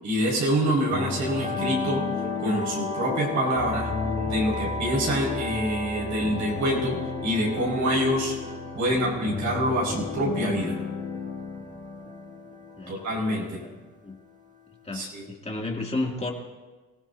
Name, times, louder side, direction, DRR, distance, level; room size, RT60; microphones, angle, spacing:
voice 1, 0.0-2.0 2.4-3.9 4.3-8.3 8.7-10.8 12.9-13.6 14.9-15.2, equal, 70° right, -4 dB, 5.6 m, -26 dB
sound 1, 0.9-12.6, left 5 dB, 45° left, 2.2 m, -34 dB
sound 2, 0.9-15.0, left 3 dB, 25° right, 2.0 m, -36 dB
voice 2, 14.8-16.3, left 2 dB, 20° left, 0 dB, 2.8 m, -32 dB
26.0 x 16.0 x 2.8 m, 1.2 s
cardioid pair, 90°, 30 cm